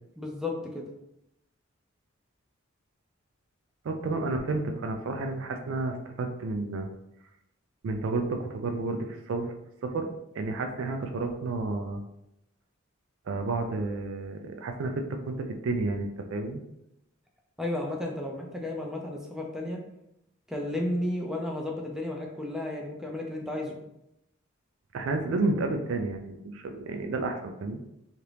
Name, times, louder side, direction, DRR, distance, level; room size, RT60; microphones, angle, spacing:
voice 1, 0.2-0.8 17.6-19.8 20.5-23.8, left 1 dB, 5° right, 0 dB, 0.4 m, -33 dB
voice 2, 3.8-6.9 7.8-9.5 9.8-10.1 10.3-12.0 13.3-16.6 24.9-27.8, right 3 dB, 65° right, 5 dB, 0.4 m, -31 dB
2.8 x 2.5 x 3.3 m, 0.83 s
head